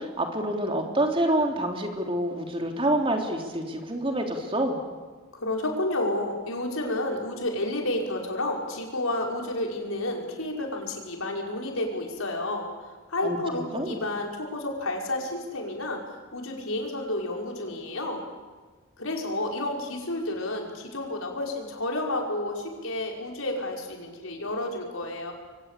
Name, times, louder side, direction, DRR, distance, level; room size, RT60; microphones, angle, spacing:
voice 1, 0.0-4.8 13.2-13.4 13.7-14.0, right 1 dB, 25° right, 3 dB, 3.5 m, -27 dB
voice 2, 5.3-12.7 13.1-16.0 16.3-18.2 19.0-25.3, left 1 dB, 80° left, 1 dB, 5.7 m, -30 dB
27.0 x 24.0 x 8.5 m, 1.3 s
head